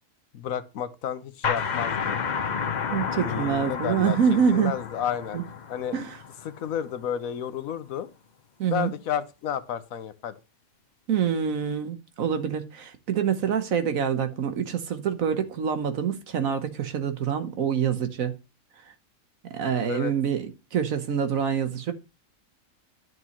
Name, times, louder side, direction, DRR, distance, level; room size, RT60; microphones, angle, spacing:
voice 1, 0.3-2.2 3.1-4.2 4.5-5.4 5.7-6.0 6.4-8.1 8.7-10.3 19.9-20.1, left 9 dB, 70° left, 1.1 m, -31 dB
sound 1, 1.4-6.9, left 6 dB, 45° left, 0.6 m, -31 dB
voice 2, 2.9-4.7 5.3-5.4 5.9-6.2 8.6-8.9 11.1-18.3 19.5-21.9, right 7 dB, 70° right, 1.3 m, -26 dB
11.0 x 6.1 x 3.0 m
omnidirectional pair, 1.5 m